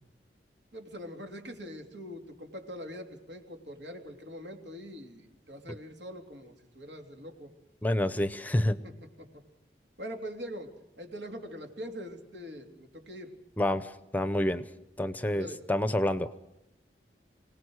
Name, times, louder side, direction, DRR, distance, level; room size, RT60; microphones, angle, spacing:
voice 1, 0.7-7.5 8.7-8.9 9.2-9.4 10.0-10.7 11.0-13.3 15.3-15.6, equal, 85° right, 3 dB, 3.3 m, -43 dB
voice 2, 7.8-8.8 13.6-14.6 15.0-16.3, left 1 dB, 10° left, 13 dB, 0.7 m, -28 dB
26.0 x 18.5 x 6.4 m, 0.90 s
head